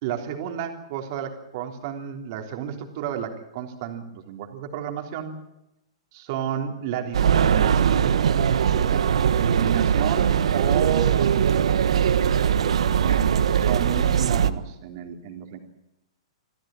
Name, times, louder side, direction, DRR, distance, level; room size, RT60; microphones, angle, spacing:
voice 1, 0.0-5.4 6.1-12.1 12.6-13.2 13.6-15.6, right 9 dB, 35° right, 5 dB, 3.4 m, -32 dB
sound 1, 7.1-14.5, right 8 dB, 80° right, 1.4 m, -21 dB
26.5 x 15.5 x 9.1 m, 0.87 s
hypercardioid pair, 175°, 3 cm